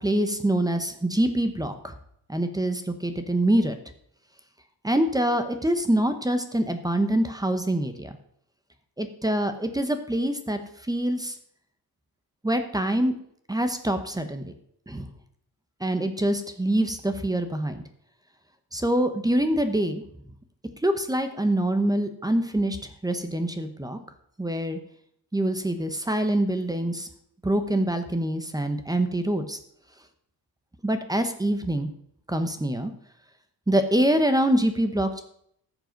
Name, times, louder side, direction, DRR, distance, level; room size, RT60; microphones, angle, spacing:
voice 1, 0.0-1.9 2.3-3.8 4.8-8.1 9.0-10.6 10.9-11.3 12.4-13.1 13.5-14.5 14.9-15.0 15.8-17.8 18.7-20.0 20.8-22.8 23.0-24.0 24.4-24.8 25.3-27.1 27.4-29.6 30.8-31.9 32.3-32.9 33.7-35.2, right 1 dB, 10° right, 8 dB, 1.0 m, -25 dB
13.5 x 7.9 x 5.2 m, 0.69 s
wide cardioid pair, 150°, 40 cm